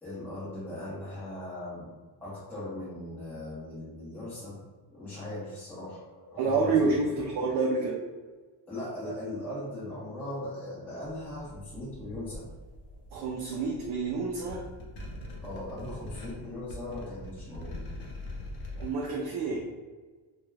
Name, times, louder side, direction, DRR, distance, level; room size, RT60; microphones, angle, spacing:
voice 1, 0.0-1.9 2.2-4.6 4.9-7.2 8.7-12.5 15.4-17.9, left 1 dB, 5° left, -11 dB, 0.8 m, -39 dB
voice 2, 6.4-8.0 13.1-14.7 18.8-19.6, right 4 dB, 55° right, -1 dB, 0.5 m, -28 dB
sound 1, 11.0-18.9, left 1 dB, 50° left, 0.6 m, -43 dB
2.3 x 2.2 x 3.1 m, 1.4 s
cardioid pair, 150°, 45 cm